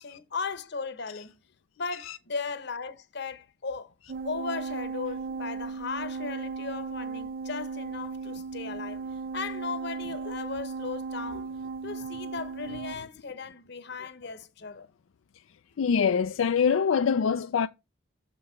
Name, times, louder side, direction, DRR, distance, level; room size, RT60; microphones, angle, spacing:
voice 1, 0.0-1.3 1.8-3.9 4.2-9.0 9.3-11.5 11.8-14.9, left 4 dB, 60° left, 1.0 m, -37 dB
sound 1, 4.1-13.0, right 5 dB, 45° right, 0.3 m, -36 dB
voice 2, 15.8-17.7, left 6 dB, 85° left, 0.4 m, -24 dB
6.8 x 5.3 x 4.4 m
head